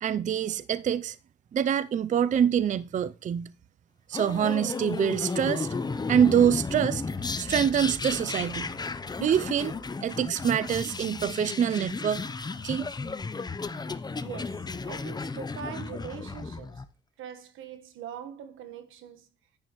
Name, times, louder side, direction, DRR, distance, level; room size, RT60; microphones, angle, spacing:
voice 1, 0.0-1.2 1.5-3.5 4.1-5.7 6.1-7.0 7.4-8.7 9.2-12.2 12.6-12.8, right 9 dB, 40° right, 0.4 m, -25 dB
sound 1, 4.1-16.8, left 4 dB, 20° left, 0.7 m, -34 dB
voice 2, 14.2-16.8 17.2-19.3, right 8 dB, 85° right, 1.3 m, -42 dB
10.5 x 8.5 x 3.0 m
cardioid pair, 90°, 20 cm